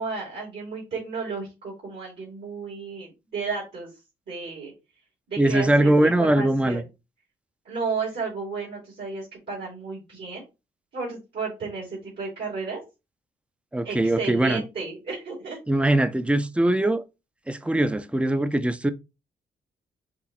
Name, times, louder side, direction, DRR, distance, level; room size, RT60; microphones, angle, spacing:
voice 1, 0.0-3.9 4.3-4.7 5.3-6.8 7.6-10.4 10.9-12.8 13.8-15.6, right 4 dB, 60° right, 3.0 m, -33 dB
voice 2, 5.4-6.8 13.7-14.6 15.7-17.0 17.5-18.9, right 1 dB, 5° right, 0.5 m, -21 dB
6.0 x 2.8 x 3.1 m
hypercardioid pair, 45°, 20 cm